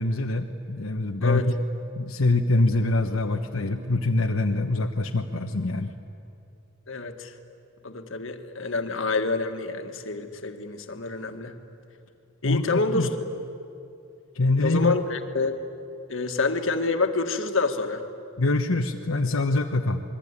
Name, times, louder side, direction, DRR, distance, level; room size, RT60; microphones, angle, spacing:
voice 1, 0.0-1.4 2.0-5.9 12.4-13.1 14.3-14.9 18.4-20.0, left 2 dB, 85° left, 2 dB, 1.2 m, -24 dB
voice 2, 1.2-1.5 6.9-7.4 7.8-11.6 12.4-13.1 14.6-15.5 16.1-18.0, left 3 dB, 65° left, 6 dB, 1.9 m, -27 dB
27.5 x 21.5 x 9.9 m, 2.6 s
head